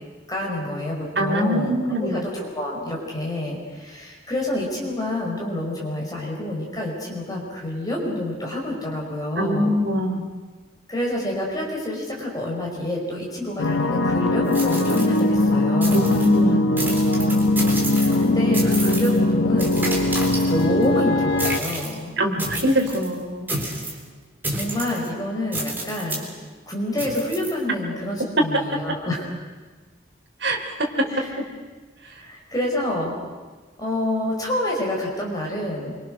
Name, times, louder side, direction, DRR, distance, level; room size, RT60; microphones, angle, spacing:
voice 1, 0.3-9.7 10.9-16.2 17.9-19.9 20.4-22.1 24.5-26.2 26.7-29.2 31.0-31.3 32.2-33.1 33.8-35.9, left 1 dB, 20° left, -2 dB, 5.3 m, -28 dB
voice 2, 1.1-2.2 9.4-10.2 15.9-16.7 22.2-23.5 30.4-31.0, equal, 70° right, 1 dB, 3.2 m, -23 dB
sound 1, 13.6-21.6, left 2 dB, 80° left, 1.3 m, -20 dB
sound 2, 14.5-15.5 15.8-16.3 16.8-18.3 18.5-19.2 19.6-20.8 21.4-21.9 22.4-23.1 23.5-24.0 24.4-25.1 25.5-26.3 27.0-27.5, right 1 dB, 10° right, 3.8 m, -30 dB
26.0 x 24.5 x 6.4 m, 1.4 s
head